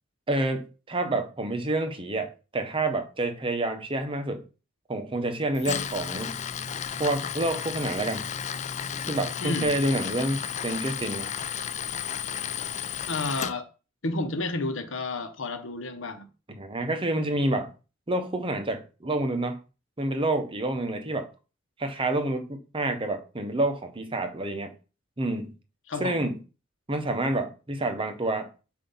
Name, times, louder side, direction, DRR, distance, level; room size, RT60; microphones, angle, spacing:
voice 1, 0.3-4.4 4.9-6.4 7.0-8.3 9.1-11.3 16.5-17.7 18.1-19.6 20.0-21.3 21.8-24.7 25.2-25.5 26.0-26.4 26.9-28.5, right 2 dB, 25° right, 0.8 m, -28 dB
Tools, 5.5-13.5, left 8 dB, 35° left, 0.4 m, -33 dB
voice 2, 9.4-9.7 13.1-13.7 14.0-16.3 25.9-26.2, left 2 dB, 75° left, 1.0 m, -31 dB
7.5 x 2.6 x 5.5 m
head